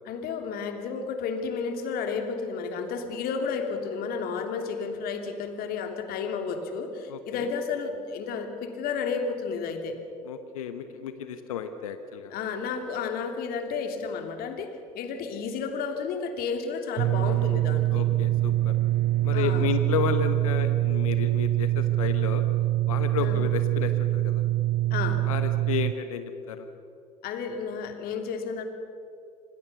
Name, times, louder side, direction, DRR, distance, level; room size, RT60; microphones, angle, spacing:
voice 1, 0.0-10.0 12.3-14.7 14.9-18.0 19.3-19.7 23.2-23.4 24.9-25.3 27.2-28.6, left 5 dB, 60° left, 6 dB, 3.0 m, -32 dB
voice 2, 7.1-7.5 10.2-12.3 17.9-18.7 19.2-22.4 22.9-24.4 25.2-26.7, left 8 dB, 80° left, 9 dB, 1.2 m, -32 dB
sound 1, 17.0-25.9, right 15 dB, 50° right, 0.6 m, -24 dB
26.5 x 19.5 x 7.0 m, 2.7 s
hypercardioid pair, 60°, 18 cm